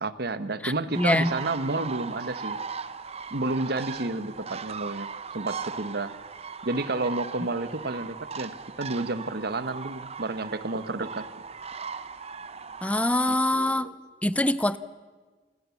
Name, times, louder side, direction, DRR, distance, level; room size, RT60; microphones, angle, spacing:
voice 1, 0.0-2.6 3.3-6.1 6.6-11.2 13.3-13.9, right 2 dB, 60° right, 13 dB, 1.2 m, -31 dB
voice 2, 0.6-1.3 12.8-13.9 14.2-14.8, left 1 dB, 10° left, 16 dB, 0.6 m, -24 dB
sound 1, 0.9-13.3, right 5 dB, 35° right, 0.8 m, -38 dB
27.5 x 19.0 x 7.1 m, 1.4 s
head